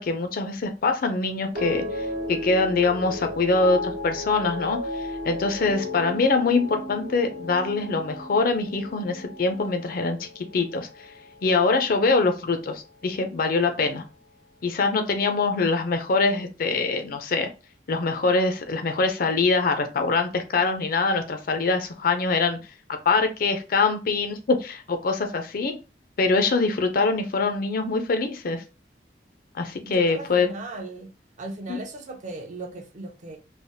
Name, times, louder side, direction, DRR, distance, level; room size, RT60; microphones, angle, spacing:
voice 1, 0.0-10.9 11.4-14.0 14.6-17.5 17.9-22.6 23.1-25.8 26.2-28.6 29.5-30.5 31.7-31.8, left 3 dB, 55° left, 0.5 m, -24 dB
sound 1, 1.5-11.9 12.2-12.8, left 1 dB, 75° right, 0.8 m, -34 dB
voice 2, 29.8-31.1 31.4-33.4, right 2 dB, 45° right, 0.5 m, -37 dB
3.2 x 2.0 x 2.6 m
head